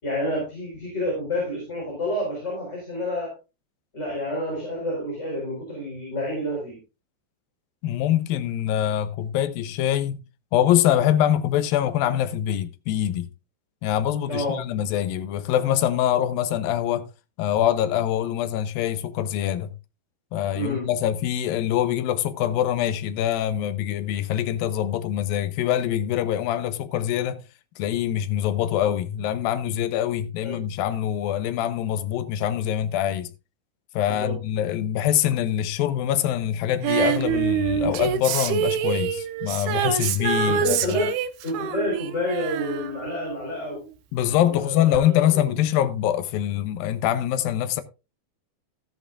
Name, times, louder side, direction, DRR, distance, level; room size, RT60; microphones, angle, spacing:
voice 1, 0.0-3.3 3.9-6.8 14.3-14.6 20.5-20.9 30.4-30.6 34.0-34.4 40.5-41.1 41.4-43.8 44.4-45.5, left 1 dB, 20° left, 4.5 m, -29 dB
voice 2, 7.8-10.2 10.5-13.3 13.8-17.1 17.4-19.7 20.3-27.4 27.8-33.3 33.9-41.0 44.1-47.8, left 11 dB, 80° left, 2.4 m, -24 dB
Female singing, 36.8-43.8 44.9-45.0, right 9 dB, 85° right, 2.8 m, -26 dB
13.5 x 11.0 x 2.4 m
omnidirectional pair, 4.4 m